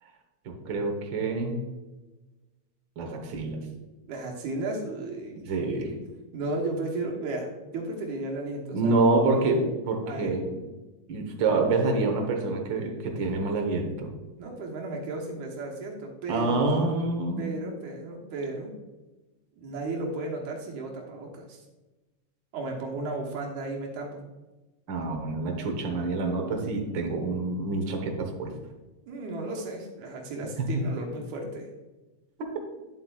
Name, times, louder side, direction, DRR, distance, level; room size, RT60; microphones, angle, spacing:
voice 1, 0.4-1.6 3.0-3.7 5.5-6.0 8.7-10.6 11.1-14.1 16.3-17.5 24.9-28.5 30.7-30.8 32.4-32.5, right 3 dB, 60° right, 3 dB, 1.3 m, -27 dB
voice 2, 4.1-5.4 6.3-9.4 10.1-10.3 14.4-16.6 17.4-18.7 19.6-21.6 22.5-24.2 29.1-31.7, right 2 dB, 75° right, 0 dB, 2.5 m, -34 dB
10.5 x 7.6 x 2.3 m, 1.1 s
omnidirectional pair, 3.4 m